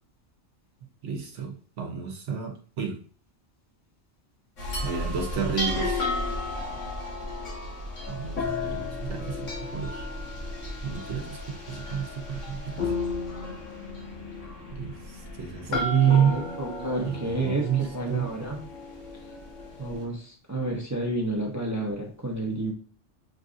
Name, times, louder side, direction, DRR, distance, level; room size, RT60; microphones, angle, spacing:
voice 1, 1.0-3.0 4.8-6.1 8.1-10.0 10.8-12.8 14.8-16.4 17.0-18.3, right 8 dB, 75° right, 3 dB, 1.0 m, -29 dB
sound 1, 4.6-20.0, left 2 dB, 80° left, 1.6 m, -34 dB
voice 2, 15.7-18.6 19.8-22.7, right 2 dB, 20° right, -1 dB, 0.6 m, -31 dB
6.5 x 2.5 x 2.5 m, 0.40 s
omnidirectional pair, 1.3 m